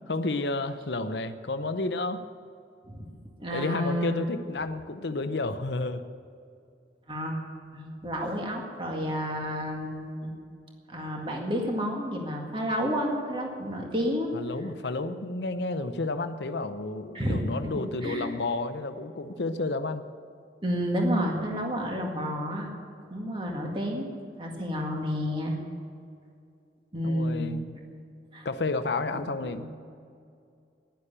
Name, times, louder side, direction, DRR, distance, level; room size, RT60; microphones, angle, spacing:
voice 1, 0.1-2.2 3.5-6.0 14.3-20.0 27.0-27.6 28.4-29.6, left 2 dB, 75° left, 9 dB, 0.7 m, -31 dB
voice 2, 3.4-4.2 7.1-7.4 7.7-10.3 10.9-14.3 17.1-17.5 17.8-18.3 20.6-22.7 23.1-25.6 26.9-27.5 28.3-28.5 29.5-29.6, equal, 30° right, 0 dB, 1.9 m, -30 dB
11.0 x 10.5 x 9.8 m, 2.4 s
head